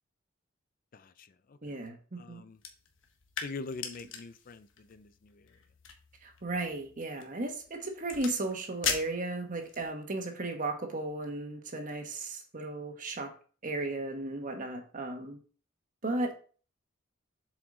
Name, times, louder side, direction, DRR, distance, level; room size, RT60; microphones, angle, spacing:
voice 1, 0.9-1.7 2.2-2.6 3.4-5.5, left 3 dB, 45° left, 0.4 m, -44 dB
voice 2, 1.6-2.4 6.2-13.3 13.6-15.4 16.0-16.3, right 2 dB, 45° right, 1.3 m, -35 dB
sound 1, 2.5-9.9, left 6 dB, 80° left, 1.3 m, -41 dB
7.4 x 4.9 x 3.8 m
head